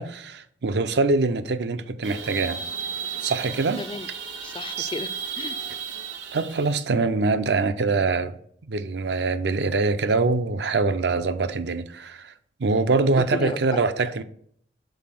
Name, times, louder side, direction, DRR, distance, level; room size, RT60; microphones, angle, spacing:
voice 1, 0.0-2.6 3.2-3.8 4.8-4.9 6.3-8.4 8.7-12.3 12.6-14.2, right 3 dB, 65° right, 0.5 m, -24 dB
sound 1, 2.0-6.8, right 7 dB, 80° right, 0.9 m, -34 dB
voice 2, 3.8-4.1 4.4-5.6 13.2-13.8, left 3 dB, 30° left, 0.3 m, -33 dB
5.6 x 4.1 x 5.9 m
head